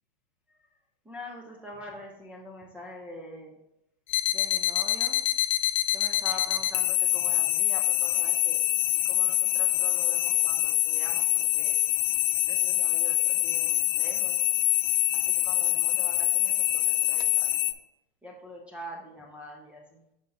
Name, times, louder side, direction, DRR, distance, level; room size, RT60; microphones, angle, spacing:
voice 1, 1.0-3.6 4.3-5.2 5.9-8.6 9.0-11.8 12.4-14.4 15.1-17.7 18.2-20.0, left 1 dB, 5° right, -1 dB, 0.4 m, -44 dB
sound 1, 4.1-17.7, left 14 dB, 55° left, 0.5 m, -25 dB
10.5 x 5.2 x 2.6 m, 0.83 s
hypercardioid pair, 145°, 29 cm